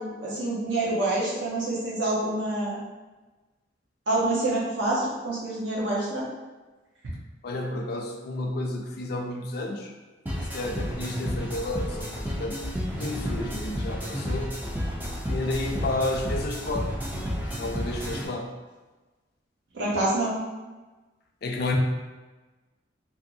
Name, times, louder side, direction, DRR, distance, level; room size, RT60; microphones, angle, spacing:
voice 1, 0.0-2.8 4.1-6.3 19.7-20.4, right 2 dB, 85° right, -5 dB, 0.9 m, -27 dB
voice 2, 7.4-9.9 10.5-12.6 13.0-14.5 15.3-16.9 17.6-18.5 21.4-21.8, left 2 dB, 55° left, 2 dB, 0.4 m, -31 dB
sound 1, 10.3-18.3, equal, 10° right, 0.4 m, -31 dB
2.8 x 2.7 x 2.6 m, 1.2 s
head